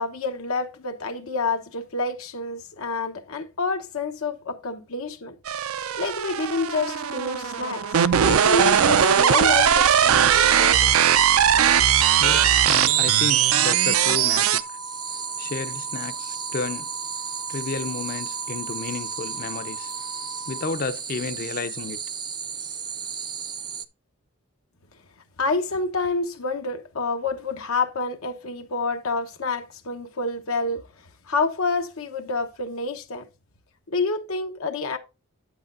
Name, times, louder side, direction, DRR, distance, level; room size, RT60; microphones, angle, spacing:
voice 1, 0.0-5.4 6.0-7.8 8.2-10.9 25.4-30.8 31.3-33.3 33.9-35.0, left 3 dB, 85° left, 1.0 m, -28 dB
sound 1, 5.5-14.6, right 9 dB, 90° right, 0.5 m, -19 dB
sound 2, 6.7-20.7, equal, 55° right, 0.7 m, -40 dB
sound 3, 8.2-23.9, right 7 dB, 20° right, 0.4 m, -34 dB
voice 2, 12.2-14.6 15.4-16.9 17.5-19.9 20.5-22.0, left 4 dB, 45° left, 0.5 m, -32 dB
9.1 x 8.1 x 2.5 m
head